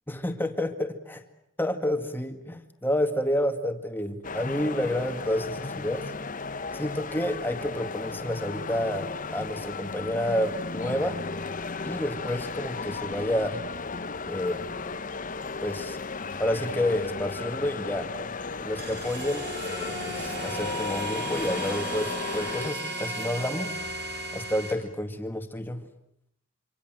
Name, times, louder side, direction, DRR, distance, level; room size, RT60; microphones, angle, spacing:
voice 1, 0.1-1.2 1.6-6.1 6.7-11.2 11.8-13.6 14.2-14.7 15.6-16.0 16.4-18.1 18.6-23.8 24.3-25.8, left 1 dB, 10° left, 6 dB, 2.0 m, -29 dB
sound 1, 4.2-22.7, left 4 dB, 40° left, 1.0 m, -35 dB
sound 2, 18.8-24.7, right 1 dB, 60° right, 5.0 m, -34 dB
26.5 x 26.0 x 7.7 m, 0.77 s
head